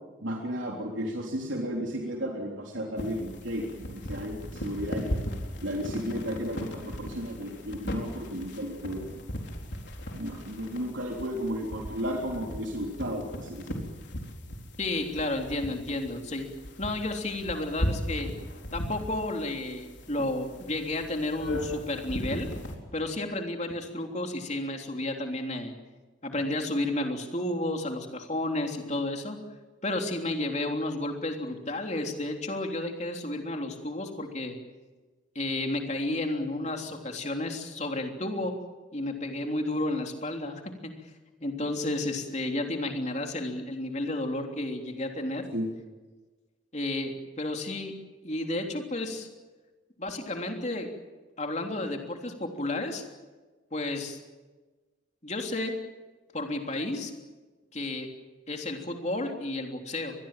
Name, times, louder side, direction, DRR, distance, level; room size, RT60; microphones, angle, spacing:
voice 1, 0.2-5.2 5.6-9.2 10.1-13.8 45.5-45.7, equal, 80° right, 0 dB, 3.6 m, -33 dB
sound 1, 3.0-22.8, equal, 65° left, 4.2 m, -37 dB
voice 2, 14.8-16.5 16.8-18.3 18.7-22.5 22.9-25.7 26.2-29.4 29.8-34.6 35.3-38.5 38.9-40.9 41.4-45.5 46.7-47.1 47.4-47.9 48.2-49.3 50.0-50.9 51.4-53.0 53.7-54.2 55.2-55.7 56.3-57.1 57.7-58.1 58.5-60.1, left 2 dB, 35° left, 3 dB, 3.3 m, -32 dB
25.0 x 20.5 x 7.6 m, 1.3 s
head